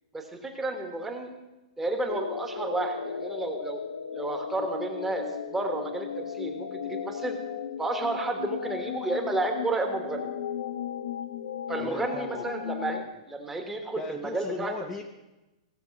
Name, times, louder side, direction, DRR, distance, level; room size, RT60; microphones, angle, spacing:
voice 1, 0.1-1.3 1.8-3.8 4.1-7.4 7.8-10.3 11.7-14.7, right 2 dB, 10° right, 4 dB, 1.2 m, -31 dB
sound 1, 2.1-13.1, left 8 dB, 75° left, 0.7 m, -36 dB
voice 2, 11.8-12.5 14.0-15.0, left 4 dB, 10° left, 3 dB, 0.5 m, -37 dB
16.5 x 6.9 x 5.3 m, 1.0 s
hypercardioid pair, 160°, 4 cm